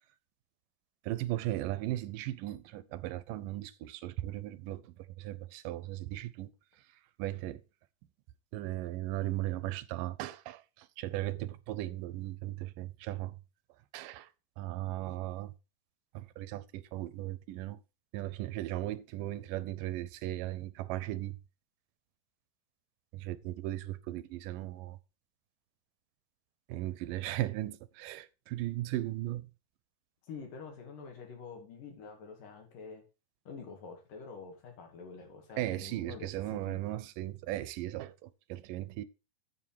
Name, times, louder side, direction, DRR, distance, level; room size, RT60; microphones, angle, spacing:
voice 1, 1.0-6.5 7.2-7.6 8.5-13.4 13.9-14.3 14.6-15.5 16.1-17.8 18.1-21.4 23.1-25.0 26.7-29.5 35.6-39.0, right 15 dB, 85° right, 2.2 m, -37 dB
voice 2, 30.2-33.0 33.5-36.8, left 5 dB, 75° left, 4.0 m, -47 dB
8.5 x 7.5 x 4.7 m
omnidirectional pair, 3.9 m